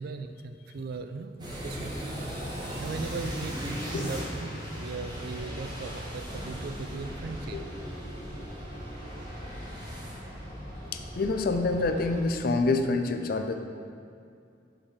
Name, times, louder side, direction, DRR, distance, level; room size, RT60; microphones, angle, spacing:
voice 1, 0.0-2.2 2.8-7.6, right 4 dB, 60° right, 8 dB, 0.4 m, -38 dB
sound 1, 1.4-12.2, equal, 25° right, 1.3 m, -38 dB
voice 2, 10.9-13.6, left 3 dB, 55° left, 6 dB, 0.4 m, -27 dB
5.0 x 4.4 x 5.7 m, 2.4 s
head